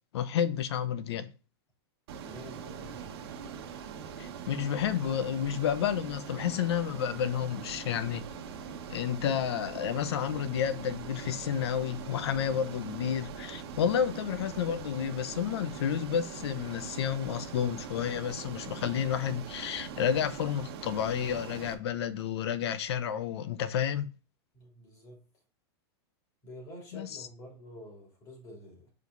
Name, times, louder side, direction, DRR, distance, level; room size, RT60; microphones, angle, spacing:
voice 1, 0.1-1.3 4.2-8.3 8.9-24.1 26.9-27.3, left 9 dB, 75° left, 0.9 m, -31 dB
Ocean, 2.1-21.7, right 6 dB, 65° right, 1.2 m, -42 dB
voice 2, 2.2-3.4 24.5-25.2 26.4-28.9, equal, 25° left, 3.2 m, -49 dB
5.1 x 4.8 x 3.9 m
supercardioid pair, 160°, 14 cm